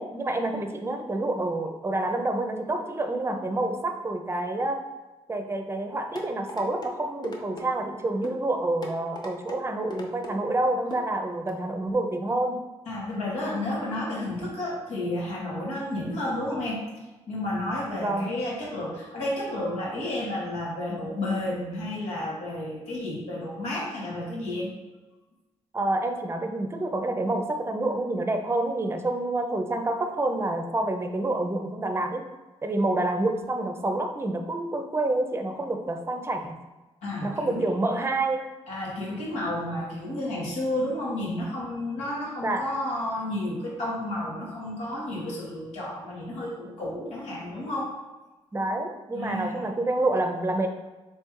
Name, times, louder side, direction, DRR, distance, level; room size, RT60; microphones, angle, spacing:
voice 1, 0.0-4.8 5.3-12.6 18.0-18.3 25.7-32.3 32.6-36.6 37.2-38.4 42.4-42.7 48.5-50.7, right 2 dB, 20° right, 5 dB, 0.6 m, -28 dB
sound 1, 6.2-6.9 7.2-7.7 8.2-8.4 8.8-9.6 9.9-10.3 10.9-11.1 11.5-11.6, left 1 dB, 40° left, 0.8 m, -38 dB
voice 2, 12.9-16.8 17.3-24.7 37.0-37.6 38.7-48.0 49.1-49.6, left 1 dB, 90° left, -4 dB, 1.5 m, -31 dB
3.4 x 3.2 x 4.5 m, 1.2 s
cardioid pair, 75°, 11 cm